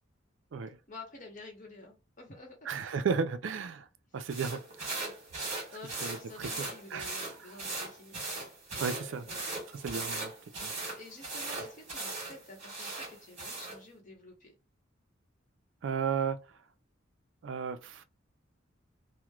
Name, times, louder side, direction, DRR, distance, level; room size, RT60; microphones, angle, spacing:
voice 1, 0.9-2.7 4.9-5.1 5.4-9.8 11.0-14.5, left 2 dB, 40° left, 1.0 m, -50 dB
voice 2, 2.7-3.9 4.1-5.1 6.0-7.1 8.8-9.2 9.7-10.3 10.6-10.7 11.6-11.7 15.8-16.4 17.4-18.0, right 6 dB, 65° right, 0.4 m, -34 dB
sound 1, 4.3-13.8, right 3 dB, 35° right, 1.3 m, -39 dB
3.0 x 2.1 x 2.3 m
head